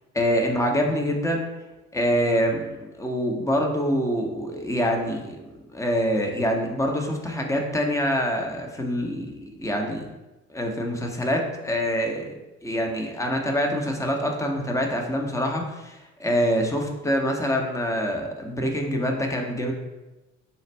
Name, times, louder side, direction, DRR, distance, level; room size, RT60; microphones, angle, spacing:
voice 1, 0.1-1.5 1.9-5.4 5.7-9.3 9.6-10.0 10.5-19.7, equal, 10° left, 1 dB, 0.8 m, -25 dB
4.2 x 2.4 x 4.4 m, 1.1 s
hypercardioid pair, 55°, 38 cm